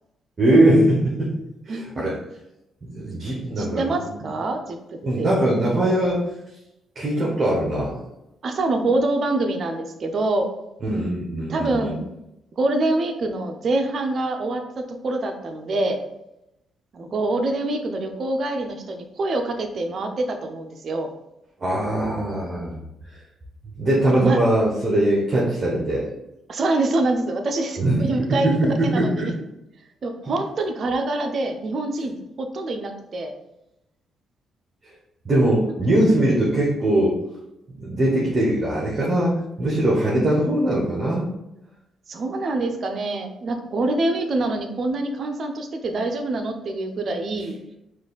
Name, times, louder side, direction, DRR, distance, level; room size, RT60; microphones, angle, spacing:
voice 1, 0.4-1.3 1.7-2.2 2.8-4.2 5.0-6.3 6.9-8.0 10.9-11.9 21.6-22.8 23.8-26.1 27.8-28.1 28.4-29.3 35.2-37.2 37.8-41.3, right 1 dB, 35° right, -5 dB, 1.2 m, -21 dB
voice 2, 1.7-2.0 3.6-4.8 5.2-5.3 8.4-10.5 11.5-12.0 12.6-16.0 16.9-21.1 24.0-24.4 26.5-28.6 28.8-29.3 30.0-33.3 42.1-47.6, right 2 dB, 50° right, 5 dB, 0.7 m, -25 dB
4.8 x 2.6 x 4.0 m, 0.88 s
cardioid pair, 90°, 0 cm